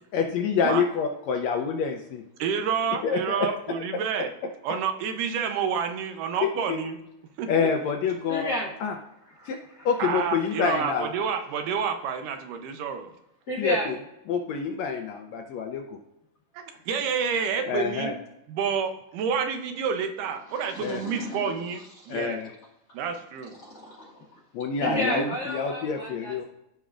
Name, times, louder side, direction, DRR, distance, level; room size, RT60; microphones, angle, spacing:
voice 1, 0.1-2.2 3.0-3.5 3.9-4.0 6.4-6.8 7.5-8.5 8.8-8.9 9.5-9.6 9.8-11.1 13.6-13.9 14.3-15.8 17.7-18.1 20.8-21.0 22.1-22.5 24.5-25.2 25.5-26.4, left 6 dB, 75° left, 3 dB, 1.7 m, -27 dB
voice 2, 2.4-4.3 4.6-7.0 7.4-7.7 10.0-13.1 16.5-18.1 18.5-22.4 22.9-23.6 24.8-25.3, right 6 dB, 90° right, 6 dB, 2.4 m, -29 dB
voice 3, 8.3-9.0 9.2-9.9 10.3-10.4 13.5-14.0 20.5-22.2 23.6-24.4 24.8-26.4, left 1 dB, 40° left, -4 dB, 1.6 m, -34 dB
14.5 x 5.3 x 2.5 m, 0.85 s
omnidirectional pair, 3.7 m